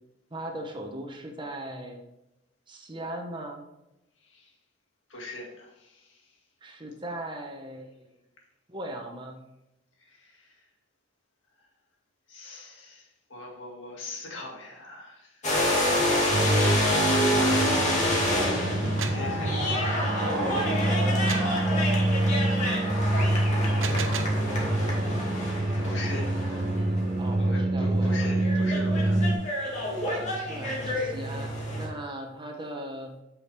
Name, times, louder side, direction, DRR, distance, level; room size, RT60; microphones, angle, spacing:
voice 1, 0.3-2.0 2.7-3.6 6.6-8.1 8.7-9.4 20.2-21.9 24.8-28.4 30.0-33.2, right 1 dB, 25° right, 2 dB, 1.1 m, -38 dB
voice 2, 4.2-4.5 5.1-6.2 10.0-10.6 12.3-16.2 17.0-20.2 23.4-23.5 25.8-26.7 27.4-29.3, left 2 dB, 75° left, 0 dB, 2.0 m, -42 dB
sound 1, 15.4-27.3 28.2-31.9, left 1 dB, 40° left, 2.2 m, -28 dB
sound 2, 16.3-29.3, right 1 dB, 45° right, 0.9 m, -26 dB
sound 3, 18.7-19.3 21.3-21.6 23.6-24.4, right 6 dB, 75° right, 0.8 m, -35 dB
8.4 x 6.4 x 3.4 m, 0.90 s
head